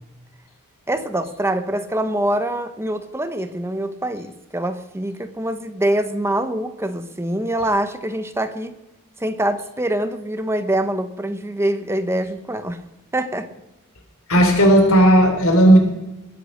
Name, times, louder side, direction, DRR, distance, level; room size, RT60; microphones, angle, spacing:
voice 1, 0.9-8.7 9.2-12.8 13.1-13.5, right 1 dB, 10° right, 9 dB, 1.0 m, -24 dB
voice 2, 14.3-15.8, right 1 dB, 65° left, 3 dB, 3.5 m, -13 dB
21.0 x 8.4 x 6.5 m, 1.0 s
head